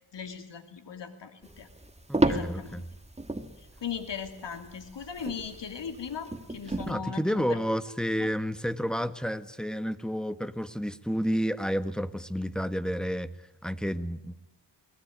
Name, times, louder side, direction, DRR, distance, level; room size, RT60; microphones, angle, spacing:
voice 1, 0.1-1.7 2.2-2.9 3.8-7.6 8.2-8.3, left 7 dB, 75° left, 8 dB, 2.9 m, -38 dB
sound 1, 1.4-6.9, right 2 dB, 15° right, 2.2 m, -33 dB
voice 2, 2.1-2.9 6.9-13.3 13.6-14.4, equal, ahead, 12 dB, 1.4 m, -30 dB
22.0 x 19.5 x 9.5 m, 0.84 s
cardioid pair, 60°, 43 cm